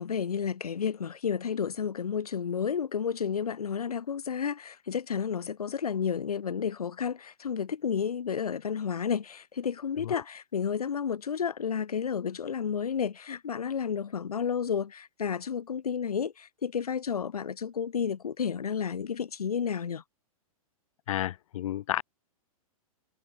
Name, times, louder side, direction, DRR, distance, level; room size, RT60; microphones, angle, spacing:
voice 1, 0.0-20.0, left 7 dB, 90° left, 4.8 m, -31 dB
voice 2, 21.1-22.0, left 12 dB, 65° left, 3.8 m, -31 dB
hypercardioid pair, 135°, 19 cm